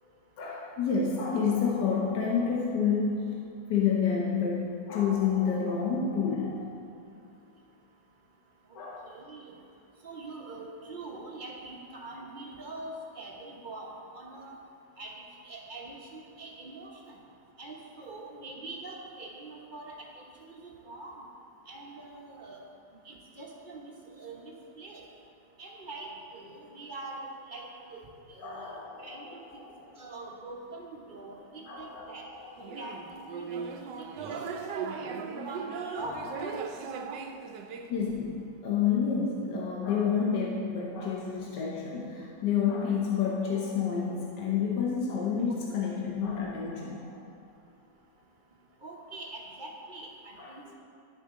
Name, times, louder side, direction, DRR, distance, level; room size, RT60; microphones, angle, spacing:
voice 1, 0.4-3.3 3.7-6.7 8.7-9.1 28.4-30.0 31.7-32.8 35.9-36.3 36.7-36.8 37.9-47.2 50.4-50.7, left 6 dB, 75° left, -3 dB, 1.6 m, -29 dB
voice 2, 9.0-9.5 10.0-14.6 15.0-17.2 17.6-21.2 21.7-22.6 23.0-25.0 25.6-28.0 28.3-28.7 29.0-29.6 30.0-32.3 32.8-34.9 35.4-36.3 48.8-50.7, right 2 dB, 35° right, -2 dB, 0.9 m, -44 dB
sound 1, 32.6-37.9, right 5 dB, 85° right, 1.2 m, -37 dB
11.0 x 6.5 x 3.7 m, 2.5 s
omnidirectional pair, 1.9 m